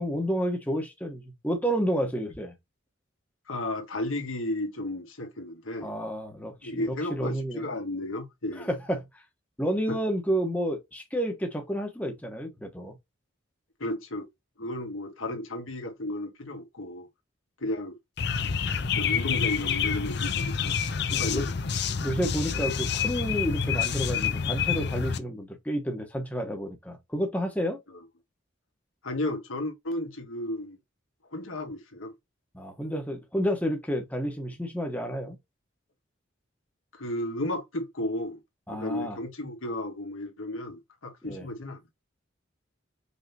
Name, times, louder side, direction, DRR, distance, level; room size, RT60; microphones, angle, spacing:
voice 1, 0.0-2.5 5.8-7.7 8.6-9.2 9.6-12.9 21.1-21.5 22.0-27.8 32.5-35.4 38.7-39.2 41.2-41.5, equal, 10° left, 1.1 m, -30 dB
voice 2, 3.5-5.9 6.6-8.7 9.9-10.0 13.8-14.3 14.6-17.1 17.6-18.0 18.9-20.8 21.0-21.5 29.0-30.8 31.3-32.1 36.9-38.4 38.7-41.8, left 1 dB, 90° left, 1.7 m, -33 dB
sound 1, 18.2-25.2, left 6 dB, 55° left, 0.6 m, -28 dB
5.3 x 3.6 x 2.8 m
head